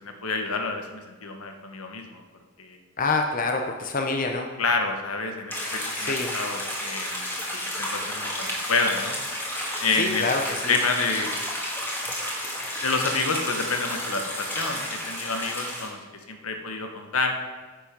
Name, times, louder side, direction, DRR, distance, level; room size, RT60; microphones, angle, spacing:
voice 1, 0.0-2.2 2.6-2.8 4.6-7.4 7.8-9.2 9.8-10.3 10.7-11.3 12.8-16.0 16.3-17.3, left 4 dB, 85° left, 5 dB, 1.2 m, -28 dB
voice 2, 3.0-4.5 6.0-6.4 10.0-10.8, left 3 dB, 40° left, 3 dB, 0.8 m, -26 dB
sound 1, 5.5-15.9, left 1 dB, 10° left, 1.9 m, -31 dB
10.0 x 7.3 x 5.3 m, 1.3 s
head